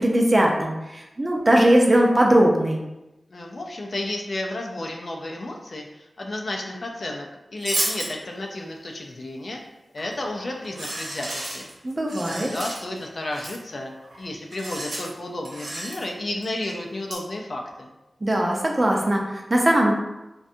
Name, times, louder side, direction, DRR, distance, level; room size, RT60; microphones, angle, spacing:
voice 1, 0.0-2.8 11.8-12.5 18.2-19.9, right 1 dB, 35° right, 0 dB, 0.5 m, -20 dB
voice 2, 3.3-9.6 9.9-11.7 12.3-17.9, left 1 dB, 60° left, 1 dB, 0.4 m, -32 dB
sound 1, 7.6-8.1 10.0-10.2 10.6-13.1 13.3-13.6 14.0-14.2 14.5-15.1 15.5-16.1 16.4-16.7 17.1-17.2, right 1 dB, 85° right, 0.7 m, -32 dB
2.6 x 2.2 x 2.5 m, 1.0 s
wide cardioid pair, 65°, 0 cm